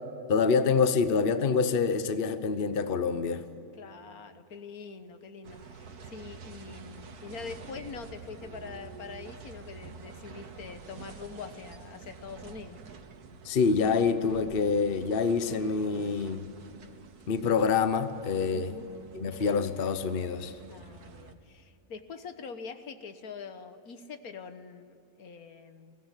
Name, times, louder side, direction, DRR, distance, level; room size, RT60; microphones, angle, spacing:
voice 1, 0.3-3.4 13.4-16.4 17.3-18.7 19.1-20.5, left 5 dB, 40° left, 11 dB, 1.0 m, -26 dB
voice 2, 3.8-12.8 18.5-18.9 20.7-26.0, left 5 dB, 70° left, 9 dB, 1.6 m, -44 dB
sound 1, 5.4-21.3, right 5 dB, 75° right, 1.8 m, -48 dB
22.5 x 17.0 x 9.9 m, 2.7 s
omnidirectional pair, 1.6 m